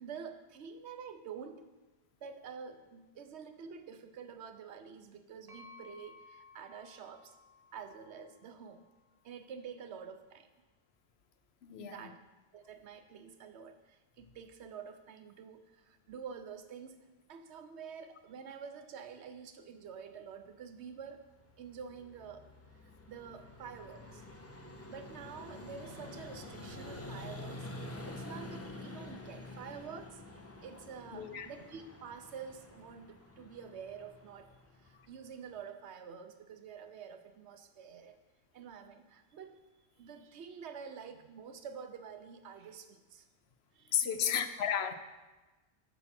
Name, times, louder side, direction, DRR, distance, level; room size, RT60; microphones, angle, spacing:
voice 1, 0.0-1.7 2.2-7.4 7.7-8.9 9.2-10.5 11.7-12.2 12.5-21.2 21.6-22.5 23.1-24.2 24.9-30.2 30.6-34.5 34.8-38.2 38.5-39.6 40.0-43.2 43.7-44.5, right 6 dB, 90° right, 9 dB, 1.0 m, -48 dB
sound 1, 5.5-9.2, left 3 dB, 20° right, 1.5 m, -58 dB
voice 2, 11.6-11.9 31.1-31.5 43.9-44.9, left 8 dB, 75° left, 10 dB, 0.9 m, -32 dB
Vehicle, 20.9-35.6, left 2 dB, 15° left, 0.7 m, -48 dB
8.0 x 6.1 x 5.8 m, 1.2 s
omnidirectional pair, 1.1 m